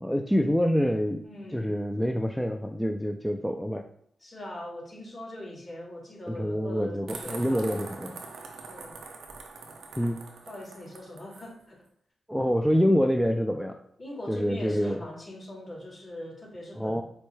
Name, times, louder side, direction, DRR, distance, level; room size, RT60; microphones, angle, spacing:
voice 1, 0.0-1.2 1.5-3.8 6.3-8.2 10.0-10.2 12.3-13.8 14.3-15.0 16.8-17.0, equal, 5° left, 4 dB, 0.3 m, -26 dB
voice 2, 1.2-1.7 4.2-7.8 8.6-9.0 10.5-11.8 14.0-17.0, left 1 dB, 40° left, 0 dB, 1.3 m, -41 dB
sound 1, 7.1-11.5, right 4 dB, 85° right, 0.5 m, -43 dB
4.3 x 2.1 x 3.1 m, 0.67 s
cardioid pair, 55°, 0 cm